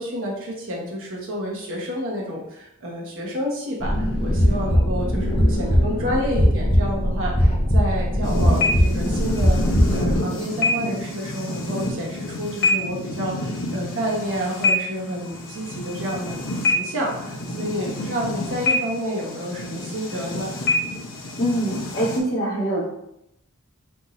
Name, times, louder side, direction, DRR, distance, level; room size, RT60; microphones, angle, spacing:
voice 1, 0.0-16.4 16.6-20.6, equal, 60° right, -2 dB, 1.2 m, -29 dB
sound 1, 3.8-10.2, equal, 25° left, 0.9 m, -20 dB
sound 2, 8.2-22.2, left 2 dB, 60° left, 0.8 m, -27 dB
voice 2, 21.4-22.8, right 1 dB, 45° left, -8 dB, 1.1 m, -24 dB
3.5 x 2.7 x 4.2 m, 0.80 s
head